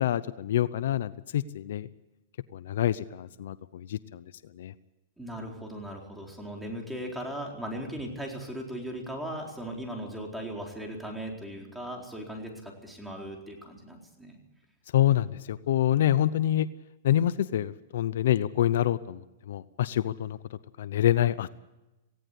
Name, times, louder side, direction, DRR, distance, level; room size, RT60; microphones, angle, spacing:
voice 1, 0.0-1.9 2.5-4.7 14.9-16.7 17.0-21.5, left 12 dB, 70° left, 16 dB, 0.7 m, -27 dB
voice 2, 5.2-14.4, equal, 5° right, 0 dB, 4.2 m, -38 dB
18.5 x 17.0 x 8.4 m, 1.0 s
hypercardioid pair, 140°, 0 cm